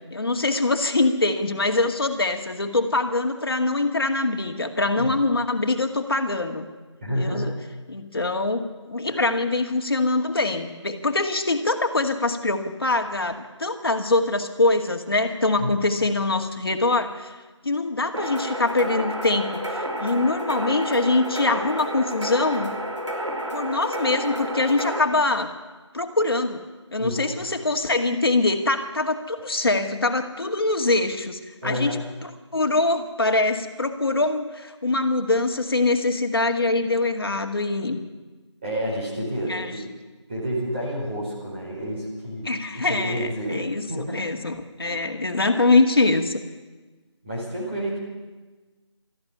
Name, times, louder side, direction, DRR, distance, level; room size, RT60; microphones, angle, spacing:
voice 1, 0.1-6.7 7.2-7.5 7.9-17.4 17.6-22.8 23.5-25.5 25.9-26.6 26.9-38.0 39.5-39.8 42.4-46.4, left 2 dB, 50° left, 5 dB, 2.1 m, -23 dB
voice 2, 7.0-7.6 8.1-8.3 9.1-9.3 15.6-15.7 27.0-27.5 31.6-32.0 38.6-39.8 40.3-44.3 44.8-45.1 47.2-48.0, equal, 20° right, -6 dB, 4.7 m, -30 dB
sound 1, 18.1-25.0, right 1 dB, 80° right, 5.1 m, -30 dB
19.0 x 14.0 x 9.9 m, 1.3 s
figure-of-eight pair, 175°, 15 cm